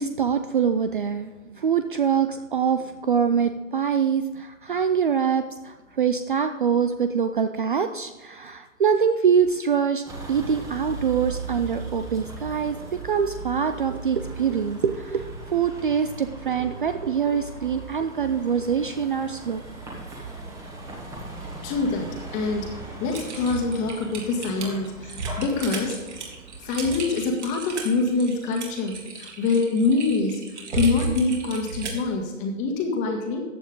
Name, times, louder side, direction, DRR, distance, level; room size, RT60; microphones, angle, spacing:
voice 1, 0.0-19.6, right 7 dB, 40° right, 9 dB, 0.5 m, -24 dB
Vehicle, 10.1-27.0, right 3 dB, 10° right, 1.5 m, -38 dB
voice 2, 21.6-22.7 23.0-26.0 26.6-33.4, left 3 dB, 20° left, 2 dB, 1.7 m, -25 dB
Typing, 23.1-32.1, right 3 dB, 55° right, 3.2 m, -33 dB
14.5 x 8.9 x 3.8 m, 1.3 s
figure-of-eight pair, 140°, 41 cm